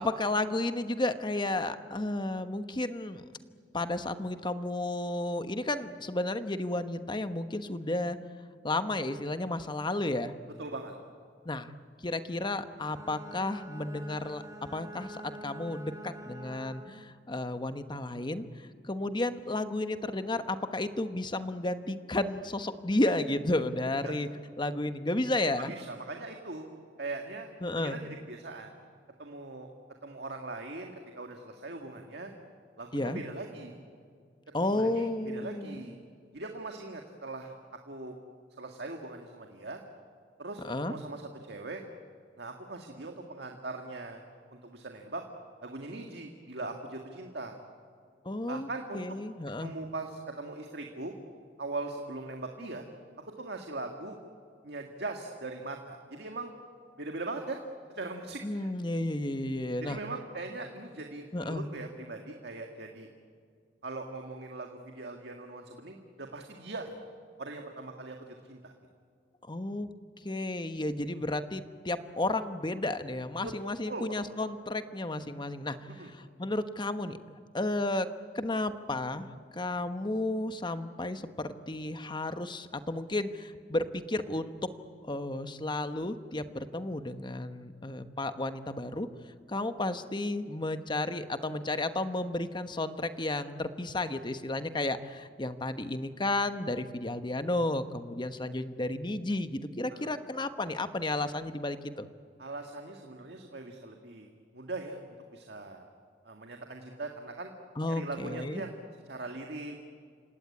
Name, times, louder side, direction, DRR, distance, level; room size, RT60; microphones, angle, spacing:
voice 1, 0.0-3.2 3.7-8.2 8.6-10.3 11.4-11.7 12.0-14.4 14.7-24.3 24.6-25.7 27.6-28.0 32.9-33.2 34.5-35.9 40.6-40.9 48.2-48.7 48.9-49.7 58.4-60.0 61.3-61.7 69.4-69.9 70.2-78.1 78.3-79.3 79.5-84.6 85.0-89.1 89.5-102.1 107.8-108.6, left 2 dB, 25° left, 10 dB, 1.1 m, -32 dB
voice 2, 10.6-10.9 24.0-24.2 25.6-26.7 27.0-28.7 29.2-29.7 30.0-32.3 32.8-33.8 34.6-36.0 36.3-37.5 37.9-38.1 38.6-39.8 40.4-41.8 42.4-44.2 44.5-45.2 45.6-47.6 48.5-49.0 49.6-51.1 51.6-52.8 53.2-54.2 54.6-56.5 57.0-57.6 58.0-58.7 59.8-63.1 63.8-67.0 67.4-68.7 73.4-73.5 73.9-74.2 76.0-76.1 99.9-100.1 102.4-104.3 104.5-105.9 106.2-107.5 107.9-108.8 109.1-109.7, right 2 dB, 65° right, 3 dB, 1.9 m, -40 dB
Bowed string instrument, 12.7-17.2, right 1 dB, 20° right, 2.4 m, -46 dB
29.0 x 17.5 x 9.7 m, 2.2 s
head